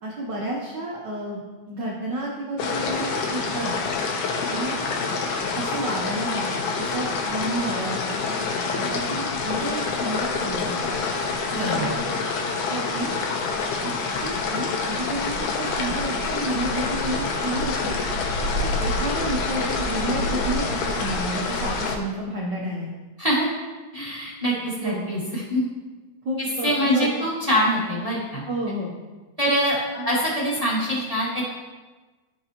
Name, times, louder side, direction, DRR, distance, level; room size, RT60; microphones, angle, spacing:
voice 1, 0.0-3.7 4.5-5.2 5.5-8.2 8.8-10.8 11.6-12.1 12.7-13.2 13.8-13.9 14.2-17.9 18.6-22.9 24.8-25.0 26.2-27.3 28.5-28.9 29.9-30.1, right 1 dB, 90° right, -4 dB, 0.9 m, -31 dB
sound 1, 2.6-22.0, left 4 dB, 90° left, 2.4 m, -27 dB
voice 2, 11.5-11.9 23.2-23.5 23.9-25.7 26.4-28.4 29.4-29.8 30.0-31.5, equal, 15° right, -7 dB, 1.3 m, -24 dB
13.0 x 5.4 x 2.9 m, 1.3 s
omnidirectional pair, 3.4 m